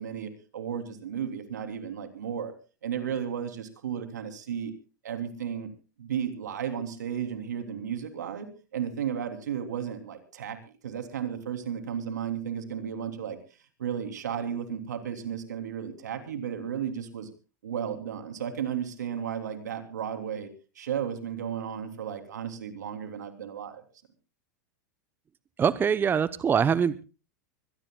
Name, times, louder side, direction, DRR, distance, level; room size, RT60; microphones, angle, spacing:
voice 1, 0.0-2.5 2.8-4.7 5.0-5.7 6.0-10.6 10.8-13.4 13.8-17.3 17.6-20.5 20.7-23.8, right 8 dB, 80° right, 7 dB, 3.2 m, -34 dB
voice 2, 25.6-27.1, right 7 dB, 20° right, 15 dB, 0.8 m, -24 dB
25.0 x 17.5 x 2.3 m, 0.34 s
hypercardioid pair, 100°, 9 cm